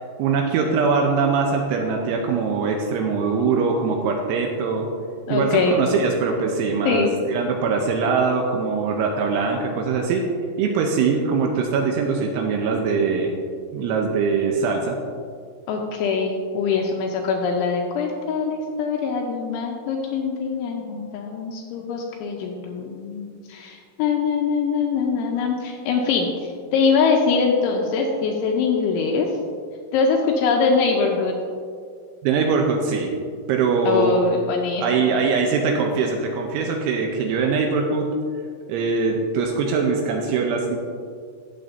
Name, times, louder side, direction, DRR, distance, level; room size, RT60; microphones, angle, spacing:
voice 1, 0.2-4.9 5.3-10.2 10.6-13.3 13.7-15.0 32.2-33.1 33.5-34.1 34.8-38.1 38.7-40.8, right 5 dB, 85° right, 1 dB, 2.8 m, -22 dB
voice 2, 5.3-5.8 6.9-7.2 15.7-29.3 29.9-31.3 33.9-35.2, left 5 dB, 85° left, 1 dB, 2.8 m, -23 dB
15.0 x 7.7 x 2.7 m, 2.2 s
omnidirectional pair, 6.0 m